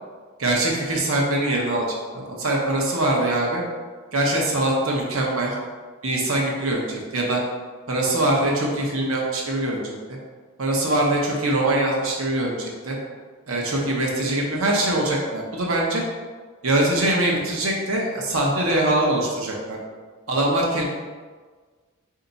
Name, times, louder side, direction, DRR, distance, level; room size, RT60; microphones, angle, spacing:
voice 1, 0.4-1.9 2.1-3.6 4.1-5.6 6.0-7.4 7.9-10.2 10.6-13.0 13.5-16.0 16.6-19.8 20.3-20.8, right 1 dB, 80° right, -2 dB, 0.9 m, -23 dB
4.5 x 2.8 x 3.9 m, 1.5 s
head